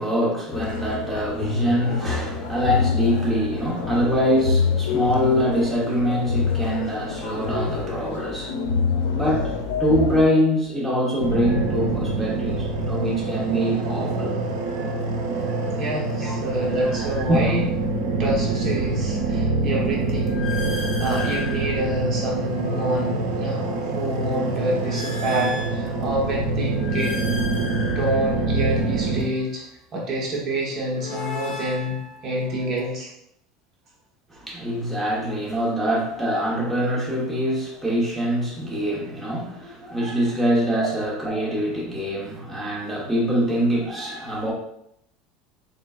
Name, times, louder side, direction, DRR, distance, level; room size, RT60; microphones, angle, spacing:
voice 1, 0.0-8.6 9.1-9.5 9.8-14.4 15.4-15.7 16.2-16.3 16.9-17.4 34.3-44.5, equal, 10° right, -5 dB, 1.0 m, -24 dB
sound 1, 0.5-10.2, left 5 dB, 85° left, 0.5 m, -26 dB
sound 2, 11.2-29.2, right 3 dB, 90° right, 0.7 m, -25 dB
sound 3, 14.7-14.9 16.6-17.8 18.2-23.0 23.6-26.2 26.7-29.6 30.6-32.9, left 3 dB, 20° left, 0.8 m, -37 dB
voice 2, 15.8-17.6 18.2-27.1 27.9-29.6 29.9-33.1, right 1 dB, 45° right, -2 dB, 1.0 m, -27 dB
3.9 x 3.6 x 2.4 m, 0.76 s
supercardioid pair, 130°, 0 cm